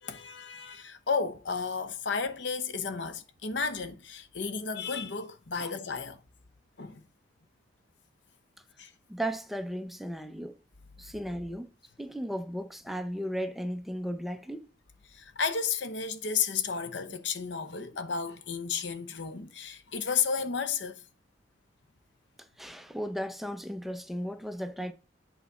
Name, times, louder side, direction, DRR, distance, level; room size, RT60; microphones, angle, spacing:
voice 1, 0.0-6.2 6.8-7.0 8.8-8.9 15.1-21.0, left 5 dB, 70° left, 0.9 m, -33 dB
voice 2, 9.1-10.6 11.0-11.7 12.0-14.7 22.6-24.9, equal, ahead, 0.6 m, -35 dB
8.4 x 4.1 x 5.9 m
head